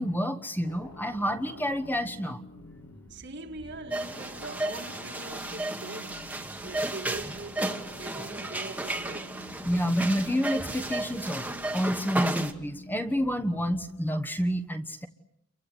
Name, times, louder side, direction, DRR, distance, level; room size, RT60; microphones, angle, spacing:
voice 1, 0.0-2.4 9.6-11.5 11.7-15.1, equal, 10° left, 1.2 m, -29 dB
sound 1, 0.6-13.9, left 1 dB, 75° left, 3.4 m, -48 dB
voice 2, 3.1-9.5, right 2 dB, 50° right, 2.0 m, -42 dB
sound 2, 3.9-12.5, right 1 dB, 5° right, 1.5 m, -33 dB
29.5 x 24.0 x 7.9 m
head